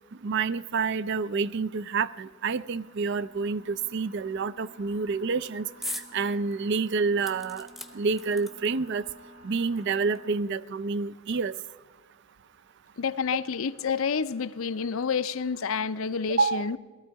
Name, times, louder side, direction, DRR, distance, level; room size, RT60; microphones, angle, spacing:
voice 1, 0.2-5.6 6.1-7.7 7.9-9.0 9.4-11.5 16.4-16.7, right 4 dB, 55° right, 0.4 m, -28 dB
sound 1, 1.7-10.4, right 1 dB, 70° right, 2.2 m, -53 dB
sound 2, 5.8-6.1 6.5-6.6 7.2-8.9 9.8-9.9 10.1-10.2, left 1 dB, ahead, 0.8 m, -39 dB
voice 2, 13.0-16.8, left 6 dB, 70° left, 0.5 m, -29 dB
18.0 x 13.5 x 4.7 m
head